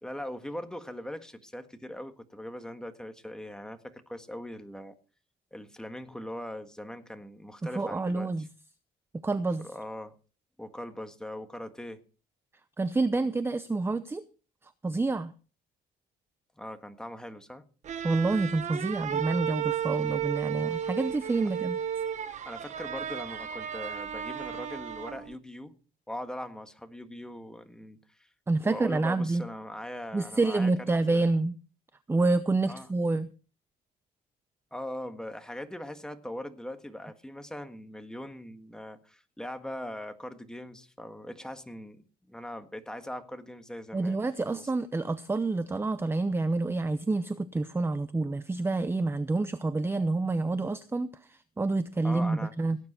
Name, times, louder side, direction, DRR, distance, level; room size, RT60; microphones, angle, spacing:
voice 1, 0.0-4.9 5.5-8.5 9.6-10.1 10.6-12.0 16.6-17.6 22.4-25.7 26.1-28.3 28.6-30.7 31.1-31.2 32.7-32.9 34.7-44.7 52.0-52.5, left 1 dB, 5° left, 7 dB, 1.6 m, -41 dB
voice 2, 7.6-8.5 9.2-9.6 12.8-14.2 14.8-15.3 18.0-21.8 28.5-29.4 30.1-31.6 32.1-33.3 43.9-52.8, right 3 dB, 15° right, 13 dB, 0.7 m, -28 dB
sound 1, 17.8-25.3, right 9 dB, 45° right, 1.2 m, -34 dB
17.5 x 9.5 x 4.4 m, 0.37 s
cardioid pair, 110°, 17 cm